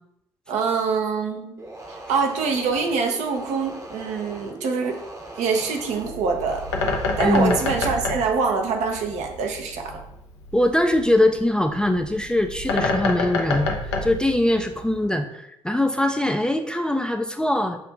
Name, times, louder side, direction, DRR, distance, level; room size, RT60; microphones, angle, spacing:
voice 1, 0.5-1.6 1.9-5.0 5.4-6.6 7.2-10.0, right 5 dB, 60° right, 3 dB, 0.6 m, -25 dB
sound 1, 1.6-7.7, right 2 dB, 25° right, 0.8 m, -40 dB
Bird, 5.9-15.0, left 3 dB, 80° left, 0.4 m, -28 dB
voice 2, 7.2-7.6 10.5-13.7 14.0-17.8, left 1 dB, 5° left, 5 dB, 0.3 m, -22 dB
6.1 x 2.5 x 2.4 m, 0.79 s
figure-of-eight pair, 40°, 14 cm